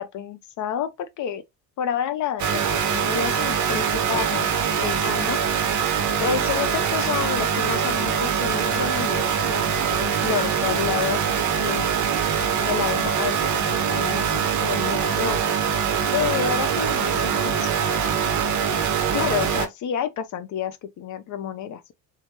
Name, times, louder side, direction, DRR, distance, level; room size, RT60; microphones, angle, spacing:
voice 1, 0.0-1.4 1.8-4.5 4.8-5.4 6.2-11.3 11.6-11.9 12.6-15.4 16.1-17.7 19.1-21.9, left 8 dB, 40° left, 0.5 m, -29 dB
sound 1, 2.4-19.7, right 7 dB, 35° right, 0.7 m, -23 dB
3.0 x 2.0 x 3.0 m
hypercardioid pair, 65°, 49 cm